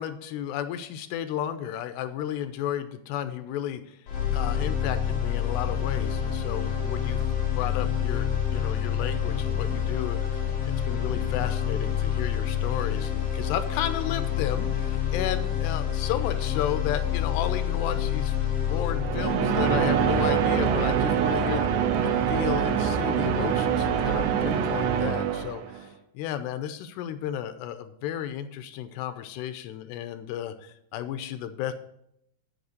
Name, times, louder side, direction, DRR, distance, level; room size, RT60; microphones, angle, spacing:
voice 1, 0.0-4.0 4.3-10.5 10.9-18.3 18.7-21.7 22.0-31.7, left 10 dB, 80° left, 11 dB, 2.8 m, -33 dB
sound 1, 4.1-22.1, left 9 dB, 45° left, 2.4 m, -28 dB
sound 2, 18.9-25.8, right 7 dB, 85° right, 3.1 m, -24 dB
7.6 x 7.0 x 8.1 m, 0.75 s
omnidirectional pair, 5.0 m